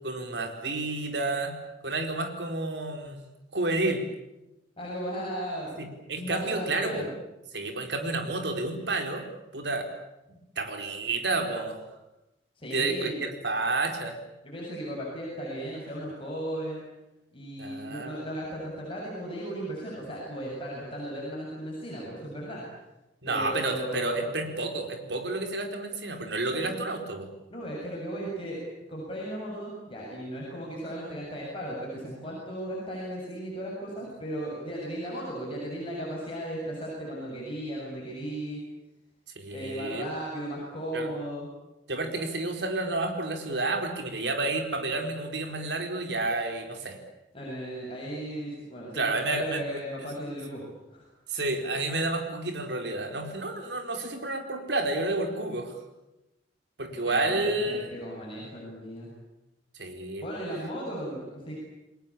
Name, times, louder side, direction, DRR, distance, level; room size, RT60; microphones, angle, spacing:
voice 1, 0.0-1.6 1.8-3.2 3.5-4.0 5.8-7.1 7.5-9.3 9.5-9.9 10.3-11.8 12.7-14.1 17.6-18.2 23.2-27.3 39.4-40.1 40.9-41.1 41.9-47.0 48.9-49.8 51.3-55.7 56.8-57.9 59.7-60.3, right 2 dB, 65° right, 5 dB, 4.5 m, -30 dB
voice 2, 4.8-7.1 12.6-13.2 14.4-16.8 17.3-22.6 23.3-24.2 26.5-26.7 27.5-28.6 28.9-38.6 39.5-41.5 47.3-50.6 50.9-51.1 57.0-59.1 60.2-61.5, right 1 dB, 30° left, -4 dB, 7.6 m, -36 dB
29.5 x 21.0 x 8.7 m, 0.95 s
head